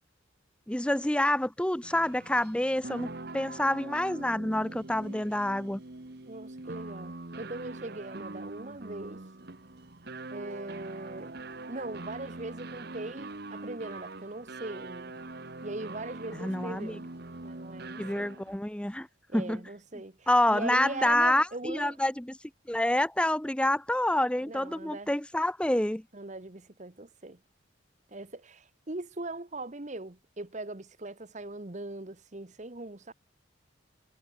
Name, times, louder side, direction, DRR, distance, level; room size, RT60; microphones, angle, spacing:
voice 1, 0.7-5.8 16.3-17.0 18.0-19.1 19.3-19.6 20.3-22.4 22.7-26.0, left 1 dB, 5° left, 0.6 m, -27 dB
sound 1, 1.8-18.6, right 2 dB, 50° right, 1.3 m, -43 dB
voice 2, 6.3-9.2 10.3-11.3 11.7-15.2 15.6-17.0 17.4-18.3 19.3-22.0 24.4-25.1 26.1-27.4 28.1-33.1, right 2 dB, 35° right, 1.1 m, -40 dB
head